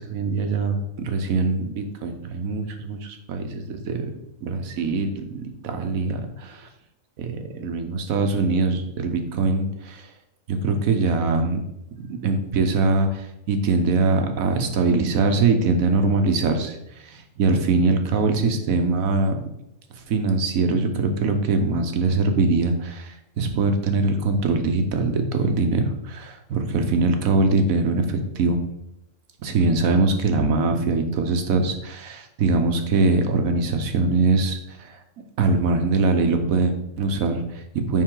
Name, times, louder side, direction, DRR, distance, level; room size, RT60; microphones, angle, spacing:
voice 1, 0.0-4.1 4.4-6.7 7.2-10.1 10.5-11.6 12.0-19.4 20.1-28.7 29.4-35.0 35.4-38.0, right 3 dB, 85° right, 6 dB, 1.3 m, -22 dB
7.4 x 5.5 x 3.8 m, 0.83 s
omnidirectional pair, 1.4 m